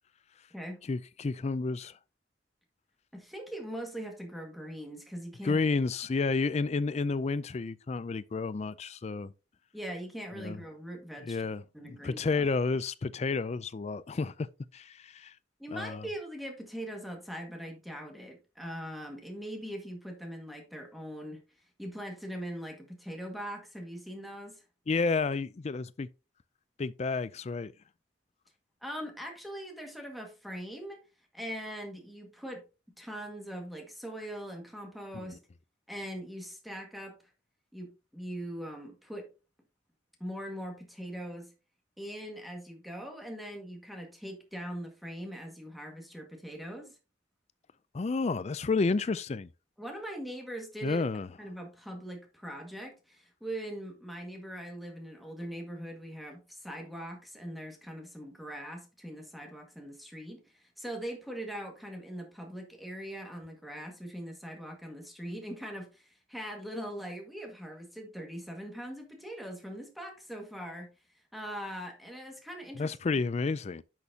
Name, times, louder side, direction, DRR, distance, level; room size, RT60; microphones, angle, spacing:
voice 1, 0.9-1.9 5.4-9.3 10.4-10.6 11.3-14.5 14.7-15.3 15.7-16.1 24.9-26.1 26.8-27.7 47.9-49.5 50.8-51.3 72.8-73.8, left 4 dB, 35° left, 0.4 m, -31 dB
voice 2, 3.1-5.6 9.7-12.4 15.6-21.4 21.8-24.6 28.8-31.0 31.3-32.6 33.0-35.4 35.9-37.2 37.7-39.3 40.2-41.5 42.0-47.0 49.8-51.0 51.4-70.9 71.3-73.2, equal, ahead, 1.8 m, -41 dB
10.5 x 6.3 x 2.8 m
head